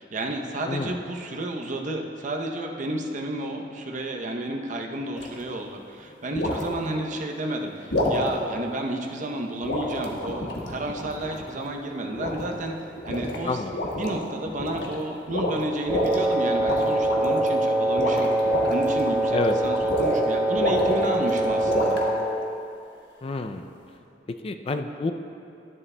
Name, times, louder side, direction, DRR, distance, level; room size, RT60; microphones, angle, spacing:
voice 1, 0.0-12.7 13.0-13.6 14.0-22.0, right 1 dB, 45° right, 3 dB, 0.7 m, -31 dB
voice 2, 0.7-1.0 13.4-13.8 19.3-19.6 23.2-23.6 24.3-25.1, left 3 dB, 35° left, 7 dB, 0.4 m, -28 dB
sound 1, 5.1-5.4 6.3-6.7 7.9-8.2 9.6-11.5 12.2-12.7 13.0-13.4 13.7-14.2 14.5-14.9 15.3-16.2 16.6-17.5 17.8-20.2 20.6-22.1, left 1 dB, 75° left, 1.3 m, -28 dB
Wind instrument woodwind instrument, 15.9-22.3, right 1 dB, 15° right, 1.1 m, -24 dB
12.5 x 11.0 x 2.2 m, 2.7 s
head